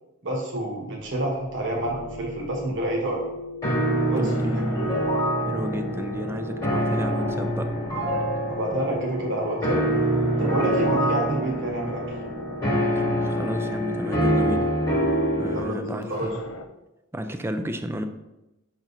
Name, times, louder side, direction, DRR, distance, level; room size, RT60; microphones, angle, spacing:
voice 1, 0.2-3.2 4.0-4.2 4.5-4.6 8.5-9.8 10.4-12.0 15.5-16.3, right 1 dB, 60° right, -1 dB, 1.5 m, -28 dB
sound 1, 1.0-16.6, left 3 dB, 80° left, 0.6 m, -38 dB
sound 2, 3.6-15.6, right 1 dB, 15° left, 1.3 m, -25 dB
voice 2, 4.2-5.2 5.4-7.7 12.9-14.7 15.4-16.4 17.1-18.0, equal, 10° right, 7 dB, 0.4 m, -32 dB
5.9 x 3.9 x 4.1 m, 0.95 s
head